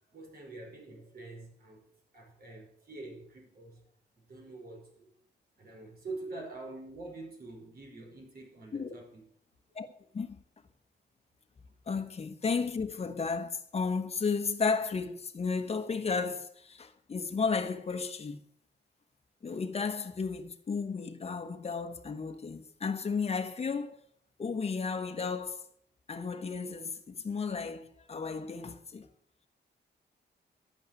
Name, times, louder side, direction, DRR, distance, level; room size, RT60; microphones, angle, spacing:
voice 1, 0.1-1.8 2.1-3.8 4.2-5.1 5.6-9.2 9.7-9.8, right 2 dB, 55° right, 5.4 m, -46 dB
voice 2, 11.9-18.4 19.4-24.0 24.4-25.6 26.1-29.1, left 5 dB, 35° left, 1.2 m, -33 dB
12.0 x 8.9 x 7.8 m
wide cardioid pair, 155°, 18 cm